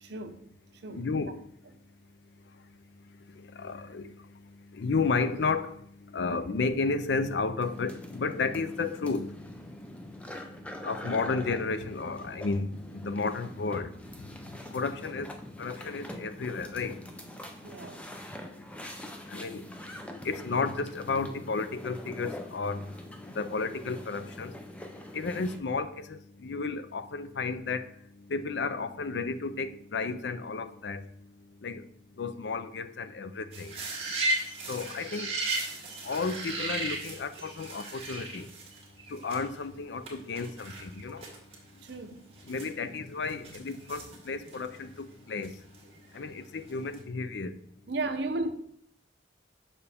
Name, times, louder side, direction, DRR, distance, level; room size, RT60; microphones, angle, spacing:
voice 1, 0.0-0.4 0.8-1.0 17.6-18.0 41.8-42.2 47.9-48.5, right 2 dB, 65° right, 0.6 m, -34 dB
voice 2, 0.9-1.4 3.4-4.1 4.7-5.8 6.1-10.0 10.7-17.0 19.3-24.6 25.1-27.9 28.3-31.1 31.6-31.9 32.2-33.8 34.7-35.4 36.0-38.5 39.1-41.2 42.5-45.5 46.1-47.6, left 4 dB, 70° left, 0.5 m, -33 dB
sound 1, 7.6-25.6, left 1 dB, 5° left, 0.5 m, -45 dB
sound 2, 33.5-39.6 40.1-40.2 40.4-41.6 41.9-42.0 42.4-44.9 45.4-46.4 46.7-47.0, right 2 dB, 30° right, 1.7 m, -35 dB
6.8 x 5.5 x 3.5 m
head